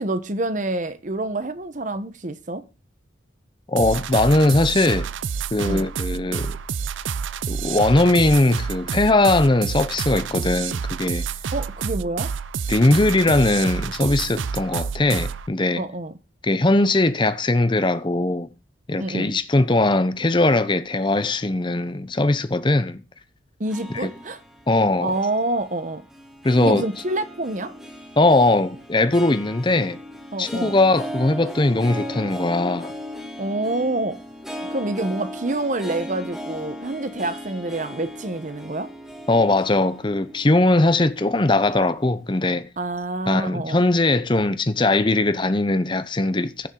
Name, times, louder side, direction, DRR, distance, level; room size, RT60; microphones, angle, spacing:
voice 1, 0.0-2.6 5.6-5.9 11.5-12.3 15.7-16.1 19.0-19.3 23.6-24.4 25.0-26.0 26.6-27.7 30.3-30.8 33.4-34.2 34.7-38.9 42.8-43.8, right 2 dB, 40° right, 0.9 m, -27 dB
voice 2, 3.7-5.1 5.5-6.6 7.5-11.2 12.7-15.8 16.4-18.5 18.9-23.0 24.0-24.1 24.7-25.1 26.4-26.8 28.2-30.0 30.4-32.9 39.3-42.7 43.3-46.7, left 2 dB, 25° left, 0.7 m, -20 dB
sound 1, 3.8-15.5, right 6 dB, 80° right, 0.5 m, -28 dB
Harp, 23.6-42.1, equal, ahead, 1.6 m, -37 dB
15.5 x 7.1 x 3.8 m
head